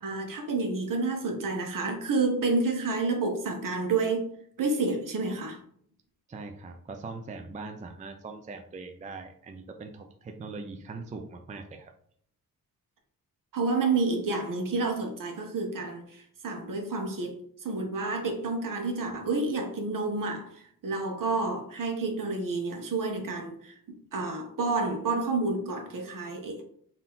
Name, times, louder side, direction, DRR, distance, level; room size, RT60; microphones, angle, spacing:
voice 1, 0.0-4.3 4.6-5.6 13.5-17.3 17.6-23.7 24.1-26.6, right 3 dB, 65° right, 4 dB, 1.0 m, -29 dB
voice 2, 6.3-11.9, right 3 dB, 20° right, 5 dB, 0.4 m, -41 dB
3.8 x 2.8 x 3.8 m, 0.63 s
cardioid pair, 95°, 35 cm